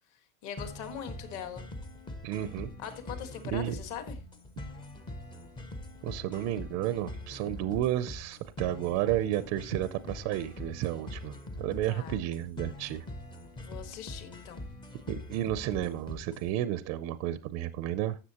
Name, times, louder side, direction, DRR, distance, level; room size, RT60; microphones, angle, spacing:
voice 1, 0.4-1.6 2.8-4.2 11.9-12.2 13.6-14.7, left 8 dB, 45° left, 8 dB, 1.6 m, -41 dB
sound 1, 0.6-16.5, left 1 dB, 10° left, 0.6 m, -43 dB
voice 2, 2.2-2.7 3.5-3.8 6.0-13.0 15.1-18.2, right 13 dB, 40° right, 13 dB, 0.5 m, -32 dB
13.0 x 7.7 x 2.9 m, 0.32 s
cardioid pair, 165°, 41 cm